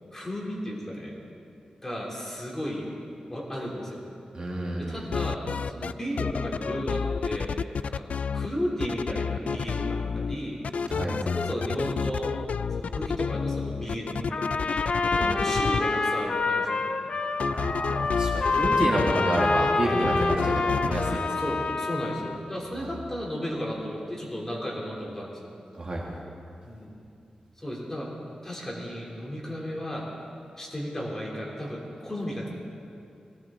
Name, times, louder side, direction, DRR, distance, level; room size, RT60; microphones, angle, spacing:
voice 1, 0.1-1.1 1.8-2.8 3.3-4.0 4.8-7.6 7.8-8.1 8.3-10.6 11.2-12.4 12.7-14.7 15.1-16.9 18.4-18.7 21.4-25.5 26.6-27.0 27.6-28.1 28.4-30.1 30.6-32.5, equal, 15° left, -3 dB, 3.1 m, -34 dB
voice 2, 4.3-5.0 10.9-11.2 15.1-15.4 17.5-21.5 25.8-26.0, right 1 dB, 40° right, -3 dB, 2.2 m, -29 dB
sound 1, 5.0-5.9 6.2-8.5 8.8-10.4 10.6-15.8 17.4-19.7 20.0-21.2, left 5 dB, 70° left, 0.3 m, -30 dB
Trumpet, 14.3-22.4, left 3 dB, 55° left, 0.8 m, -27 dB
20.0 x 16.5 x 3.8 m, 2.5 s
wide cardioid pair, 115°, 2 cm